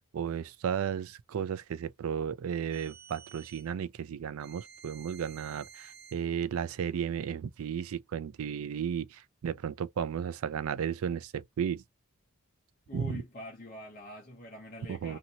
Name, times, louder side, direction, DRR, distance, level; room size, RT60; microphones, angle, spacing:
voice 1, 0.1-11.8 12.9-13.2 14.9-15.2, right 8 dB, 65° right, 0.3 m, -34 dB
sound 1, 2.7-3.7 4.4-6.3, right 7 dB, 45° right, 0.8 m, -52 dB
voice 2, 12.9-15.2, left 1 dB, 40° left, 0.8 m, -44 dB
2.7 x 2.7 x 2.8 m
head